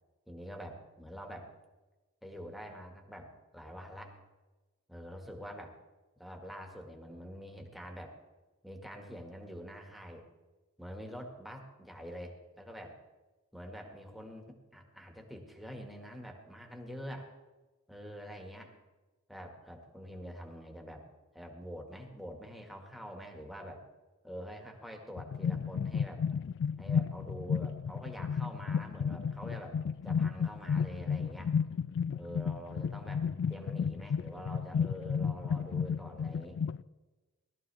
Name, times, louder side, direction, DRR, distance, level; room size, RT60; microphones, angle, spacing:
voice 1, 0.3-1.5 2.2-4.2 4.9-5.8 6.2-8.1 8.6-10.2 10.8-13.0 13.5-17.3 17.9-18.7 19.3-21.0 21.3-23.9 24.2-26.2 26.8-31.6 32.2-36.6, equal, ahead, 1 dB, 1.8 m, -46 dB
sound 1, 25.2-36.8, left 6 dB, 55° left, 0.3 m, -33 dB
18.5 x 13.5 x 3.5 m, 1.2 s
head